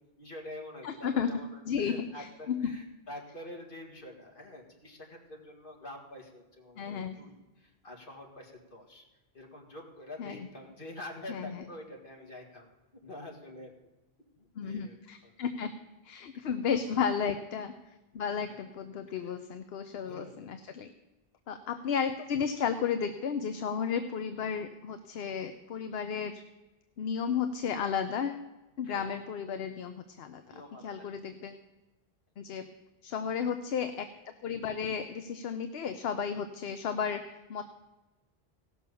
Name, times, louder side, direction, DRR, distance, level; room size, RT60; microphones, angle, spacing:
voice 1, 0.2-9.0 9.3-12.7 13.0-13.7 14.4-14.9 15.2-15.3 19.2-19.3 20.0-20.5 28.8-29.1 30.4-31.1, left 1 dB, 55° left, 1 dB, 2.2 m, -46 dB
voice 2, 0.8-1.3 1.6-2.7 6.8-7.2 10.2-10.5 11.3-11.6 14.5-15.7 16.0-17.7 18.1-20.9 21.5-26.4 27.0-28.5 28.8-31.6 32.4-32.7 33.0-34.1 34.4-37.6, left 7 dB, 75° left, 9 dB, 0.9 m, -33 dB
16.5 x 6.2 x 6.9 m, 1.1 s
omnidirectional pair, 1.1 m